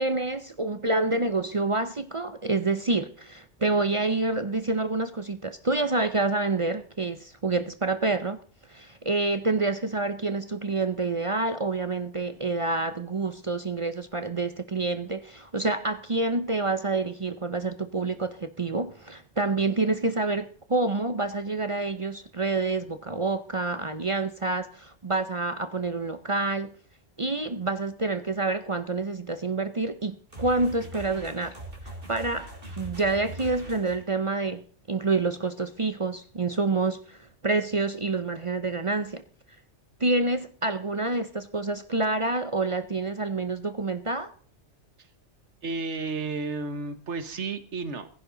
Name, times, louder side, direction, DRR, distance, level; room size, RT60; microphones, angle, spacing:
voice 1, 0.0-8.4 8.7-26.7 27.2-31.6 31.8-39.2 40.0-44.3, right 3 dB, 35° right, 0.7 m, -28 dB
sound 1, 30.3-34.1, right 1 dB, 50° right, 3.3 m, -41 dB
voice 2, 45.6-48.1, right 3 dB, 75° right, 1.5 m, -32 dB
16.0 x 15.5 x 3.9 m
omnidirectional pair, 1.2 m